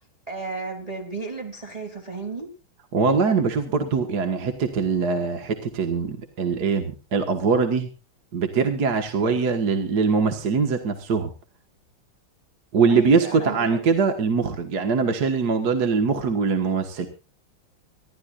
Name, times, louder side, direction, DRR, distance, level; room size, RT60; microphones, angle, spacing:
voice 1, 0.3-2.5 12.9-13.9, right 4 dB, 15° right, 3 dB, 2.3 m, -34 dB
voice 2, 2.9-7.9 8.3-11.3 12.7-17.1, right 5 dB, 50° right, 5 dB, 1.9 m, -22 dB
25.5 x 13.0 x 2.5 m, 0.34 s
omnidirectional pair, 2.3 m